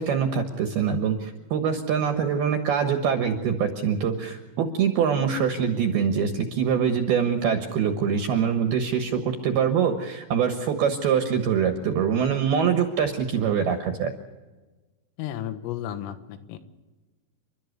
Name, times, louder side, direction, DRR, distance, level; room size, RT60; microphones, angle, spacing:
voice 1, 0.0-14.1, right 7 dB, 65° right, 6 dB, 2.7 m, -24 dB
voice 2, 15.2-16.6, left 11 dB, 85° left, 10 dB, 4.0 m, -33 dB
30.0 x 13.0 x 8.1 m, 1.2 s
omnidirectional pair, 5.8 m